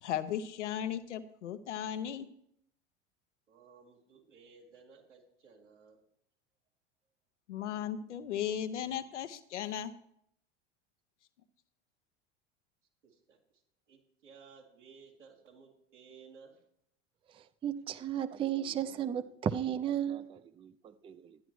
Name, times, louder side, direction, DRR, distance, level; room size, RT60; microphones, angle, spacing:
voice 1, 0.0-2.3 7.5-9.9, left 9 dB, 85° left, 0.8 m, -36 dB
voice 2, 3.5-6.0 13.0-13.4 13.9-16.6, right 5 dB, 90° right, 2.9 m, -57 dB
voice 3, 17.3-21.4, right 9 dB, 15° right, 0.4 m, -35 dB
12.5 x 10.0 x 3.1 m
hypercardioid pair, 85°, 35 cm